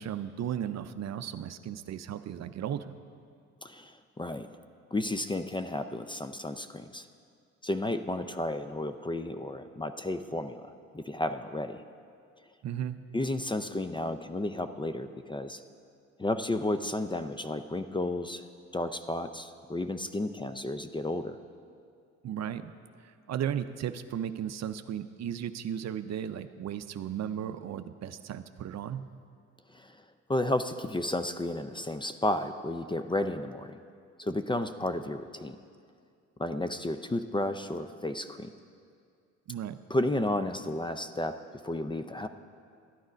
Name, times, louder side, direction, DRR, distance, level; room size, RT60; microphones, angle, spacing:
voice 1, 0.0-2.9 12.6-13.0 22.2-22.7 23.3-29.1 39.5-39.8, right 9 dB, 50° right, 11 dB, 0.6 m, -35 dB
voice 2, 3.6-4.5 4.9-7.1 7.6-11.8 13.1-15.6 16.2-18.4 18.7-21.4 29.7-30.0 30.3-33.8 34.2-35.6 36.4-38.5 39.9-42.3, left 1 dB, 15° left, 10 dB, 0.5 m, -32 dB
12.5 x 9.5 x 5.1 m, 2.3 s
supercardioid pair, 65°, 33 cm